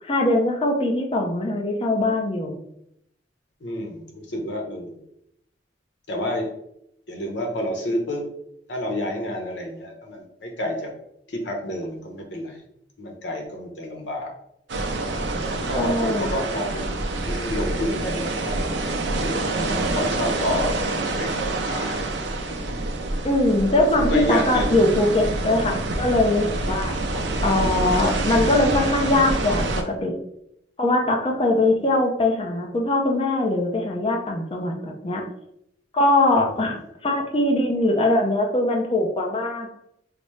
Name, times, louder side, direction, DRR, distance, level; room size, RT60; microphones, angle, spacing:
voice 1, 0.0-2.6 15.7-16.3 23.2-27.0 27.4-30.2 30.8-35.2 35.9-39.7, left 2 dB, 30° left, 1 dB, 0.6 m, -22 dB
voice 2, 3.6-5.0 6.1-6.5 7.1-8.2 8.7-10.9 11.3-12.6 13.0-14.3 15.4-16.9 17.2-18.6 19.2-20.7 21.0-22.1 24.1-24.8 27.1-27.8, left 1 dB, 80° left, 1 dB, 0.9 m, -29 dB
sound 1, 14.7-29.8, right 2 dB, 85° right, 0.5 m, -26 dB
5.0 x 2.0 x 3.1 m, 0.77 s
head